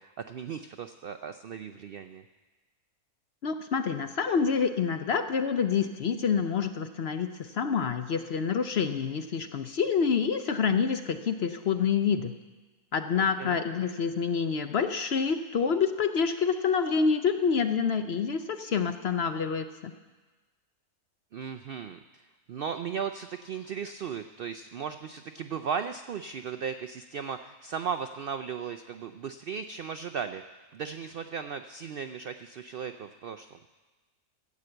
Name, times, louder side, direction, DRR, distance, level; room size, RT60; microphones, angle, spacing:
voice 1, 0.0-2.2 13.1-13.6 21.3-30.4 30.7-33.6, right 7 dB, 80° right, 9 dB, 0.5 m, -36 dB
voice 2, 3.4-12.3 12.9-19.9, left 6 dB, 60° left, 8 dB, 0.7 m, -27 dB
13.5 x 8.3 x 7.7 m, 1.3 s
omnidirectional pair, 1.6 m